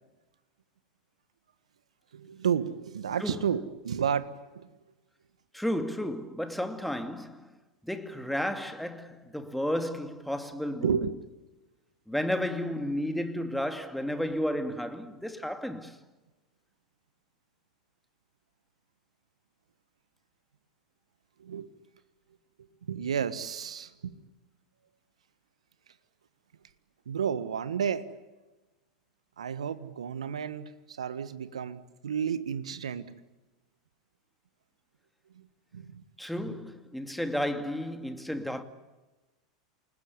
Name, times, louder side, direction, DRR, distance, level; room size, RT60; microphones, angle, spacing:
voice 1, 2.1-4.7 10.8-11.1 21.4-21.7 22.9-24.1 27.1-28.1 29.4-33.0 35.3-35.5 35.7-36.0 36.5-36.6, right 7 dB, 80° right, 1.5 m, -32 dB
voice 2, 5.5-7.5 7.8-11.0 12.1-16.0 36.2-38.6, equal, ahead, 2.6 m, -32 dB
28.5 x 20.5 x 9.8 m
hypercardioid pair, 90°, 3 cm